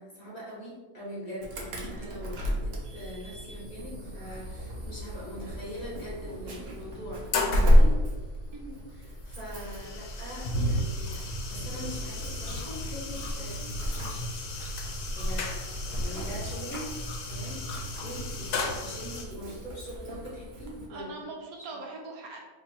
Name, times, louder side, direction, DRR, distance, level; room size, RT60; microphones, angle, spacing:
voice 1, 0.0-7.9 8.9-14.4 15.1-16.9 17.2-18.5 18.8-21.3 21.6-21.8, equal, 30° left, -6 dB, 1.0 m, -42 dB
Insect / Alarm, 1.4-20.9, equal, 55° right, 0.8 m, -31 dB
sound 1, 4.2-4.5 5.7-5.8 6.3-6.4 6.9-7.8 8.8-19.2, left 2 dB, 75° left, 1.1 m, -35 dB
Chewing mastication, 10.8-18.7, left 1 dB, 55° left, 1.2 m, -43 dB
voice 2, 20.9-22.4, right 3 dB, 70° right, 0 dB, 1.1 m, -41 dB
3.0 x 2.6 x 4.2 m, 1.3 s
omnidirectional pair, 1.7 m